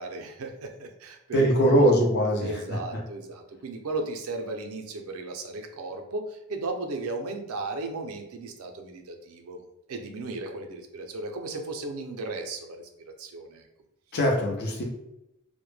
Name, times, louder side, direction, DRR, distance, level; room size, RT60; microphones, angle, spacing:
voice 1, 0.0-1.9 2.4-9.6 9.9-12.9 13.2-13.6, right 2 dB, 75° right, 4 dB, 0.4 m, -35 dB
voice 2, 1.3-3.0 14.1-14.8, equal, 50° left, -1 dB, 0.5 m, -22 dB
2.1 x 2.0 x 3.1 m, 0.89 s
head